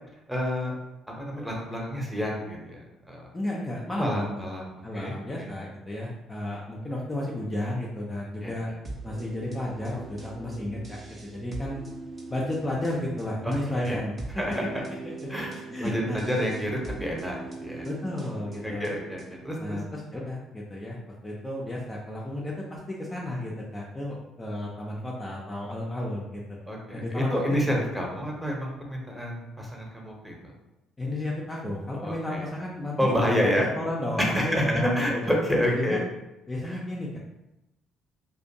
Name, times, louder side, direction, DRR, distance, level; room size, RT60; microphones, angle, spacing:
voice 1, 0.3-0.7 1.1-2.8 3.1-3.3 3.9-4.7 4.9-5.5 8.4-8.5 13.4-13.6 13.8-14.0 14.4-14.6 15.3-17.9 18.6-19.8 26.7-30.3 32.0-32.5 33.0-33.7 34.2-34.6 34.9-36.0 36.7-36.8, equal, 5° right, -2 dB, 0.8 m, -29 dB
voice 2, 3.3-8.7 9.0-11.8 12.3-14.4 15.7-16.2 17.8-18.9 19.6-21.0 21.2-26.6 26.9-27.8 31.0-35.3 35.7-36.0 36.5-37.2, left 1 dB, 20° left, -4 dB, 0.4 m, -33 dB
sound 1, 8.8-19.5, right 3 dB, 35° right, 0.5 m, -42 dB
2.4 x 2.2 x 2.7 m, 0.93 s
figure-of-eight pair, 50°, 0 cm